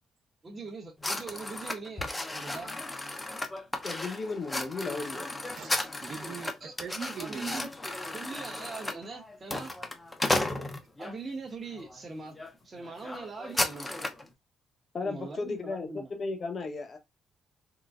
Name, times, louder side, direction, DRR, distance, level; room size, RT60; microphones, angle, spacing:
voice 1, 0.4-2.8 6.6-6.7 7.2-7.7 8.1-9.7 11.0-12.4 12.6-13.9 15.0-16.1, right 4 dB, 35° right, 0.9 m, -41 dB
sound 1, 1.0-11.2 11.8-12.0 12.3-12.5 12.8-14.3, left 2 dB, 15° left, 0.7 m, -34 dB
voice 2, 3.8-5.4 14.9-17.0, left 3 dB, 45° left, 0.9 m, -35 dB
voice 3, 5.5-7.7, right 6 dB, 60° right, 1.1 m, -40 dB
3.8 x 2.2 x 2.5 m
cardioid pair, 90°, 0 cm